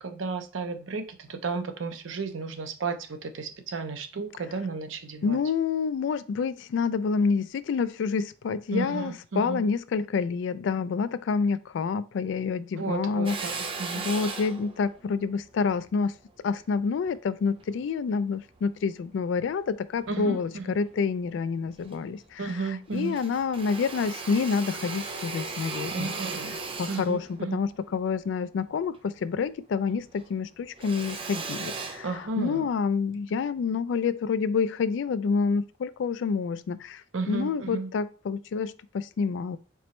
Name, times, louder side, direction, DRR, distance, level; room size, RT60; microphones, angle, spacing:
voice 1, 0.0-5.4 8.7-9.6 12.7-14.1 20.1-20.7 22.4-23.2 25.9-26.6 26.9-27.6 32.0-32.7 37.1-37.9, right 4 dB, 80° right, 0.6 m, -33 dB
voice 2, 5.2-13.7 14.0-16.1 16.4-26.1 26.5-39.6, left 5 dB, 70° left, 0.3 m, -28 dB
Drill, 13.3-17.8 18.4-19.5 20.0-20.9 21.3-21.4 21.6-22.6 22.9-29.6 29.9-32.7, right 4 dB, 30° right, 0.5 m, -38 dB
4.5 x 2.9 x 3.1 m
head